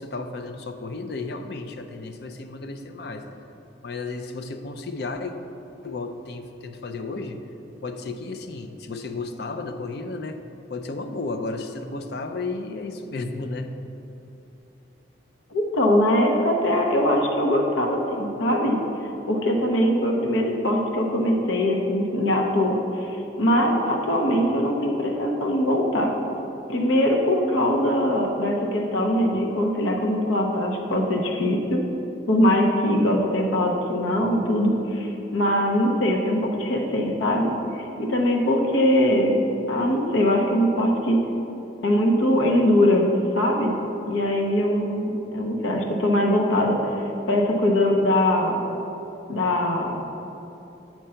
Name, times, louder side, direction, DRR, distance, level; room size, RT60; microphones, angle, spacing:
voice 1, 0.0-3.3 3.8-5.3 5.8-7.4 7.8-10.4 10.7-13.7, left 3 dB, 55° left, 7 dB, 0.5 m, -33 dB
voice 2, 15.5-18.8 19.3-26.1 26.7-31.8 32.3-41.2 41.8-43.1 43.3-43.7 44.1-48.6 49.3-50.0, left 1 dB, 90° left, 0 dB, 0.8 m, -22 dB
7.6 x 4.5 x 5.6 m, 2.9 s
head